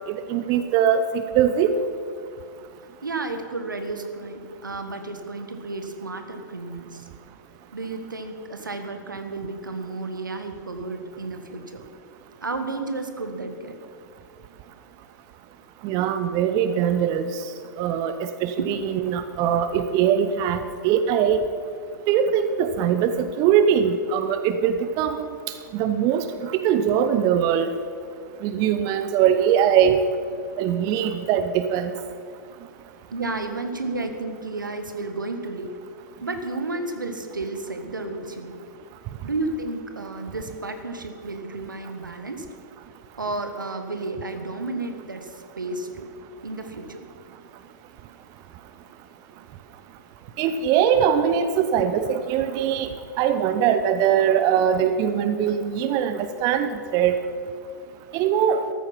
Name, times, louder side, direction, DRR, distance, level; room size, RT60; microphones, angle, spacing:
voice 1, 0.3-1.7 15.8-17.4 17.8-21.4 22.1-25.3 25.7-27.7 28.4-30.0 30.6-31.9 50.4-52.9 53.2-57.2 58.1-58.6, right 8 dB, 40° right, 10 dB, 0.8 m, -21 dB
voice 2, 3.0-7.1 7.7-11.8 12.4-13.7 18.6-18.7 33.1-35.7 36.2-38.6 39.2-42.5 43.2-46.1 46.4-47.0, right 2 dB, 85° right, 7 dB, 1.6 m, -32 dB
14.0 x 13.5 x 5.9 m, 2.4 s
figure-of-eight pair, 100°, 10 cm